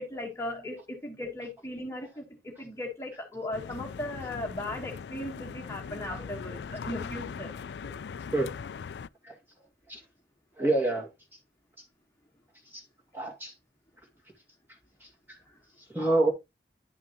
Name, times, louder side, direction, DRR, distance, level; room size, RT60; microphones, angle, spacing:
voice 1, 0.0-7.5 15.5-15.6, left 1 dB, 15° left, 1.4 m, -37 dB
sound 1, 3.5-9.1, left 6 dB, 80° left, 0.4 m, -40 dB
voice 2, 10.6-11.1 11.8-11.9 12.6-12.8 13.1-13.5 15.0-15.1 15.8-16.3, right 2 dB, 10° right, 2.1 m, -28 dB
10.5 x 5.8 x 3.0 m
head